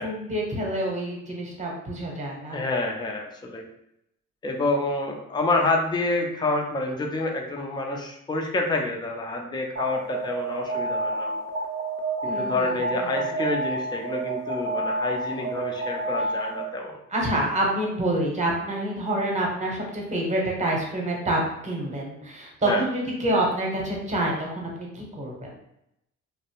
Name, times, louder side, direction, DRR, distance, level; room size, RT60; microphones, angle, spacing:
voice 1, 0.0-2.6 12.2-13.1 17.1-25.5, right 1 dB, 25° right, -1 dB, 0.9 m, -27 dB
voice 2, 2.5-3.7 4.4-11.4 12.2-17.0 22.6-22.9, left 2 dB, 15° left, 1 dB, 0.4 m, -28 dB
Alarm, 9.8-16.8, right 2 dB, 45° right, 0.5 m, -29 dB
2.6 x 2.0 x 2.9 m, 0.80 s
cardioid pair, 90°, 30 cm